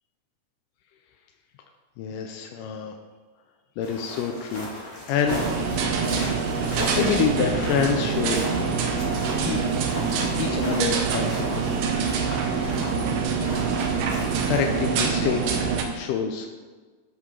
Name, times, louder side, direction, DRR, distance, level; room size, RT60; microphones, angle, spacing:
voice 1, 2.0-3.0 3.8-5.4 6.9-8.4 9.4-9.6 10.4-11.7 14.5-16.5, left 7 dB, 80° left, 3 dB, 2.0 m, -27 dB
sound 1, 3.8-14.8, left 1 dB, 35° left, 1.1 m, -37 dB
sound 2, 5.3-15.8, right 5 dB, 75° right, 2.2 m, -25 dB
13.0 x 5.3 x 3.7 m, 1.4 s
omnidirectional pair, 4.2 m